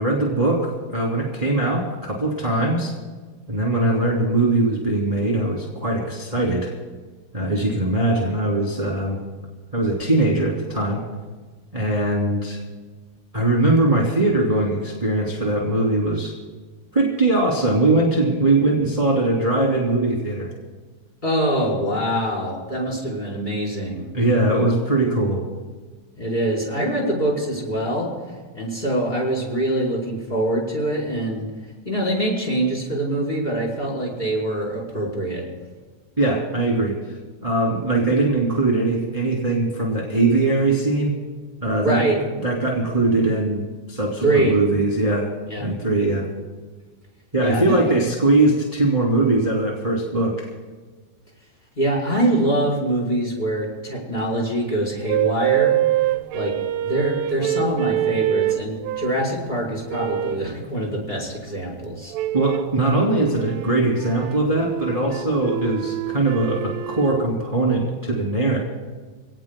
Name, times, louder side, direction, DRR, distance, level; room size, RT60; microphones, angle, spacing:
voice 1, 0.0-2.9 3.5-6.7 7.3-9.2 9.7-11.0 11.7-12.6 13.3-16.3 16.9-20.5 24.1-25.4 36.2-37.0 37.4-41.1 41.6-42.0 42.4-43.6 43.9-45.3 45.6-46.3 47.3-50.5 62.3-68.6, right 2 dB, 15° right, -3 dB, 1.5 m, -21 dB
voice 2, 21.2-24.1 26.2-28.1 28.5-31.5 31.8-35.5 41.8-42.2 44.2-44.5 45.5-45.6 47.4-47.9 51.8-55.8 56.3-56.5 56.8-62.1, right 1 dB, 10° left, -4 dB, 4.2 m, -24 dB
sound 1, 55.1-59.3 59.9-60.5 62.1-62.8 63.3-67.3, right 13 dB, 90° right, 3.2 m, -25 dB
28.0 x 18.5 x 2.3 m, 1.4 s
omnidirectional pair, 5.5 m